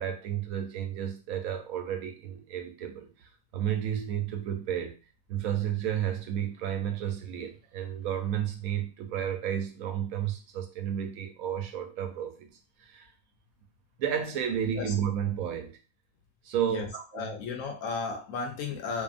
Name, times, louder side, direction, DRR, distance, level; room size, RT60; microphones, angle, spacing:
voice 1, 0.0-5.0 5.3-12.5 12.8-13.1 14.0-15.7 16.4-17.3, right 9 dB, 90° right, 5 dB, 1.1 m, -32 dB
voice 2, 17.1-19.0, left 4 dB, 75° left, 3 dB, 0.9 m, -34 dB
2.7 x 2.4 x 2.4 m, 0.34 s
omnidirectional pair, 1.4 m